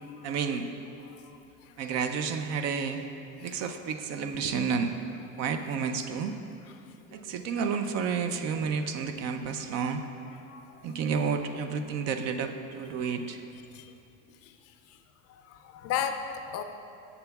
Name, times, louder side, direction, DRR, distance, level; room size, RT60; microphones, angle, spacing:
voice 1, 0.2-0.7 1.8-3.0 3.4-5.0 5.4-6.4 7.1-10.1 10.8-13.4, right 6 dB, 45° right, 8 dB, 0.5 m, -30 dB
voice 2, 10.5-10.9 11.3-11.4 13.0-13.1 13.7-13.9 14.4-14.5 15.5-16.6, left 8 dB, 40° left, 7 dB, 0.4 m, -36 dB
12.5 x 7.0 x 2.3 m, 2.7 s
supercardioid pair, 125°, 37 cm